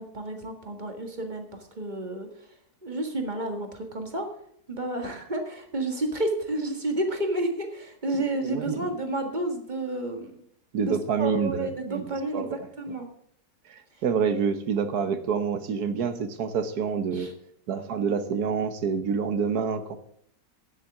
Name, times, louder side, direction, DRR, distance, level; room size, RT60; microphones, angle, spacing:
voice 1, 0.0-2.3 2.8-4.3 4.7-10.3 10.8-13.1 17.1-17.3, right 1 dB, 30° right, 4 dB, 1.8 m, -31 dB
voice 2, 8.4-8.9 10.7-12.5 13.7-17.3 17.7-20.0, right 6 dB, 75° right, 10 dB, 1.6 m, -27 dB
9.5 x 8.3 x 7.2 m, 0.68 s
omnidirectional pair, 1.7 m